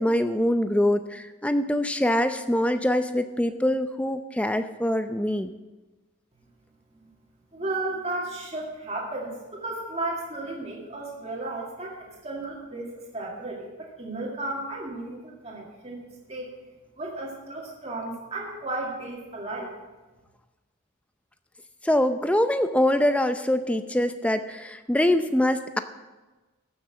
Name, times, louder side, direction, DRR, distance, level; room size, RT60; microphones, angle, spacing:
voice 1, 0.0-5.5 21.8-25.8, left 1 dB, 5° left, 9 dB, 0.5 m, -24 dB
voice 2, 7.5-13.7 14.0-16.0 16.3-16.5 17.0-19.7, right 2 dB, 30° right, -3 dB, 2.2 m, -34 dB
14.0 x 6.7 x 7.2 m, 1.2 s
head